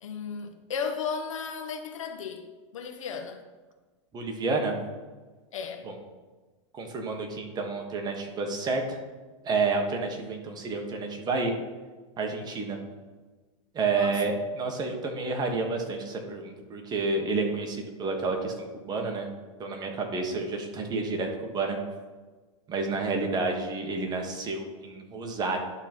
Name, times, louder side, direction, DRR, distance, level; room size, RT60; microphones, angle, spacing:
voice 1, 0.0-2.4 2.7-3.4 5.5-5.8 14.0-14.2, left 6 dB, 90° left, 6 dB, 1.1 m, -34 dB
voice 2, 4.1-4.7 5.8-6.0 6.7-9.0 9.4-11.5 12.2-12.8 13.7-19.3 19.6-21.8 22.7-25.6, right 3 dB, 25° right, 3 dB, 1.5 m, -30 dB
11.5 x 4.0 x 4.5 m, 1.3 s
supercardioid pair, 125°, 16 cm